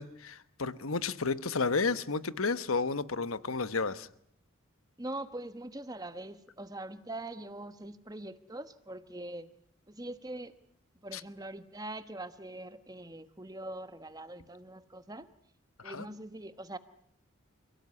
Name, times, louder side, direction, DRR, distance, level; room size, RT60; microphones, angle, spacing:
voice 1, 0.0-4.1 11.1-11.2 15.8-16.0, left 4 dB, 85° left, 14 dB, 1.2 m, -32 dB
voice 2, 5.0-9.5 9.9-10.6 11.0-15.3 15.8-16.8, right 1 dB, 20° right, 12 dB, 1.2 m, -42 dB
29.0 x 17.5 x 9.6 m, 0.70 s
head